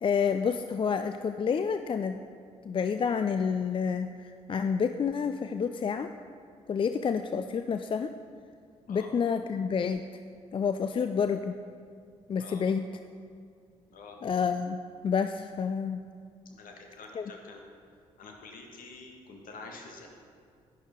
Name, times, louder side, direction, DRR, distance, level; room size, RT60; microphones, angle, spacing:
voice 1, 0.0-2.2 2.6-4.1 4.5-6.1 6.7-8.1 8.9-10.0 10.5-11.6 12.3-12.9 14.2-16.0 17.2-17.3, left 6 dB, 30° left, 9 dB, 0.4 m, -29 dB
voice 2, 13.9-14.2 16.4-17.6 18.2-20.1, left 3 dB, 60° left, 2 dB, 1.7 m, -47 dB
11.0 x 9.7 x 3.8 m, 2.2 s
hypercardioid pair, 45°, 16 cm